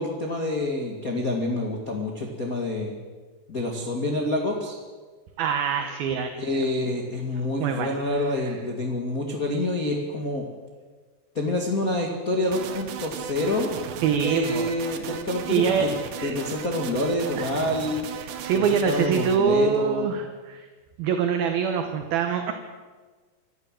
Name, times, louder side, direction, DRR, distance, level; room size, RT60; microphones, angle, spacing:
voice 1, 0.0-2.9 3.5-4.8 6.4-10.4 11.3-13.8 14.1-15.9 16.2-18.1 18.5-20.2, left 1 dB, 35° left, 0 dB, 1.5 m, -27 dB
voice 2, 5.4-6.6 7.6-7.9 8.4-8.5 14.0-14.7 15.5-15.9 16.2-16.4 17.4-17.5 18.2-20.7 21.0-22.5, right 6 dB, 70° right, 6 dB, 2.8 m, -24 dB
sound 1, 12.5-19.4, right 9 dB, 85° right, 3.7 m, -36 dB
26.0 x 14.0 x 7.7 m, 1.4 s
omnidirectional pair, 4.9 m